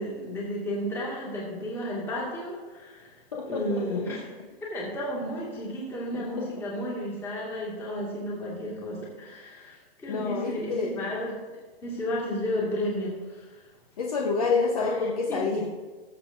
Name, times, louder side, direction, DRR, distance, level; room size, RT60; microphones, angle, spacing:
voice 1, 0.0-3.2 3.4-4.2 4.6-11.3 11.8-13.6 14.8-14.9 15.3-15.4, equal, 10° left, -5 dB, 1.9 m, -33 dB
voice 2, 3.3-4.0 6.1-6.5 10.1-11.0 14.0-15.7, left 4 dB, 35° left, -1 dB, 1.0 m, -28 dB
19.5 x 7.3 x 2.6 m, 1.3 s
hypercardioid pair, 180°, 31 cm